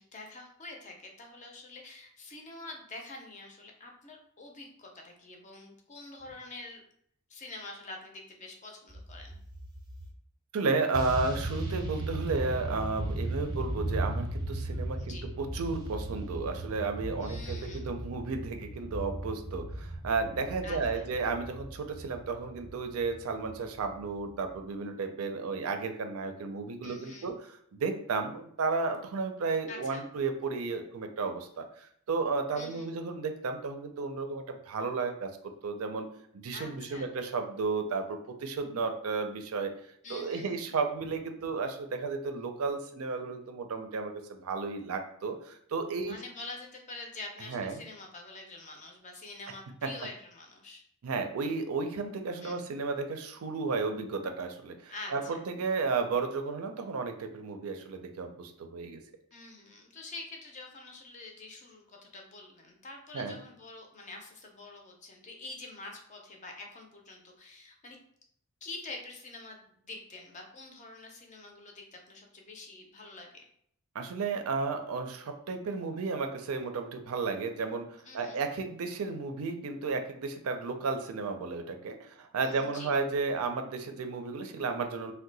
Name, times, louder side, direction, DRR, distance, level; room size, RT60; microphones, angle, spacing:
voice 1, 0.0-6.8 7.3-9.4 15.0-15.3 17.2-17.9 20.6-21.1 26.8-27.3 29.7-30.0 32.5-32.9 36.5-37.1 40.0-40.7 45.9-50.8 52.4-52.6 54.9-55.4 59.3-68.0 68.6-73.4 78.0-78.4 82.4-82.9, left 3 dB, 35° left, 2 dB, 0.5 m, -46 dB
sound 1, 8.9-10.1 10.9-24.6, right 1 dB, 20° right, 0.6 m, -37 dB
voice 2, 10.5-35.3 35.6-36.1 36.3-39.7 40.1-46.1 47.5-47.8 49.8-49.9 51.0-59.0 63.1-63.4 73.9-85.1, right 4 dB, 75° right, 6 dB, 0.4 m, -33 dB
2.7 x 2.2 x 3.9 m, 0.67 s
head